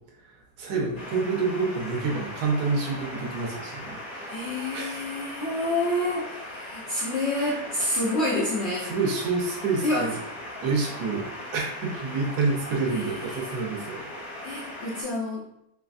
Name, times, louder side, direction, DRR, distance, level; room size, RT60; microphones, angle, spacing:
voice 1, 0.3-4.4 4.7-5.0 7.3-7.6 8.8-10.2 10.6-14.0, right 4 dB, 70° right, -1 dB, 1.2 m, -28 dB
sound 1, 0.9-15.0, left 1 dB, 25° left, 1.1 m, -39 dB
voice 2, 4.3-8.9 9.8-10.1 12.9-13.4 14.4-15.5, left 1 dB, 65° left, -7 dB, 0.6 m, -28 dB
3.3 x 3.0 x 2.4 m, 0.79 s
omnidirectional pair, 1.8 m